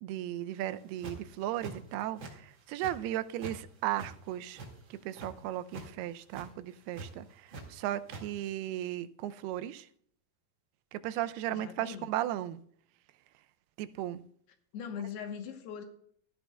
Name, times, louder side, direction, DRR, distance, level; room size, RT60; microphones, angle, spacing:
voice 1, 0.0-4.6 5.1-9.9 10.9-12.6 13.8-14.2, right 13 dB, 85° right, 2.5 m, -36 dB
sound 1, 0.7-1.3 1.6-2.3 2.6-3.6 3.8-5.3 5.6-5.9 6.2-6.5 6.9-7.6 7.9-8.2, right 3 dB, 40° right, 2.1 m, -44 dB
voice 2, 11.5-12.1 14.7-15.8, left 7 dB, 90° left, 3.1 m, -40 dB
16.0 x 13.0 x 2.2 m
omnidirectional pair, 4.5 m